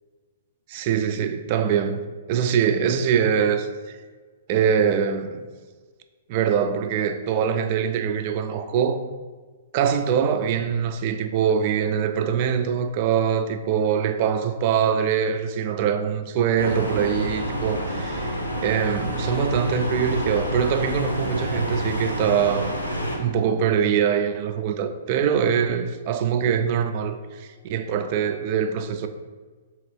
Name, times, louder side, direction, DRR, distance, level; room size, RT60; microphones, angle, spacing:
voice 1, 0.7-2.0 2.3-4.0 4.5-5.4 6.3-9.0 9.7-22.8 23.1-29.1, right 7 dB, 40° right, 0.3 m, -23 dB
sound 1, 16.6-23.2, equal, 80° left, 0.8 m, -28 dB
4.6 x 3.0 x 3.1 m
figure-of-eight pair, 115°, 0 cm